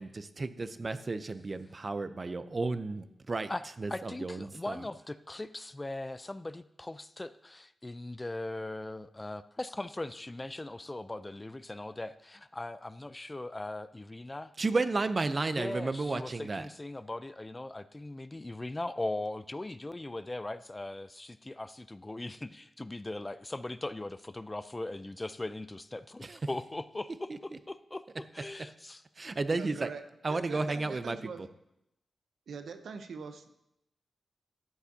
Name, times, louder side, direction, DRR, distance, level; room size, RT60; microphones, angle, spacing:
voice 1, 0.0-3.5 3.8-4.8 14.6-16.7 26.2-26.4 29.2-29.9 30.2-31.2, right 3 dB, 45° right, 12 dB, 0.6 m, -32 dB
voice 2, 3.9-14.5 15.5-28.0 28.3-29.0, left 2 dB, 25° left, 13 dB, 0.4 m, -39 dB
voice 3, 29.5-30.0 30.3-31.4 32.5-33.5, right 5 dB, 80° right, 8 dB, 0.7 m, -43 dB
12.5 x 8.0 x 2.8 m, 0.83 s
cardioid pair, 55°, 0 cm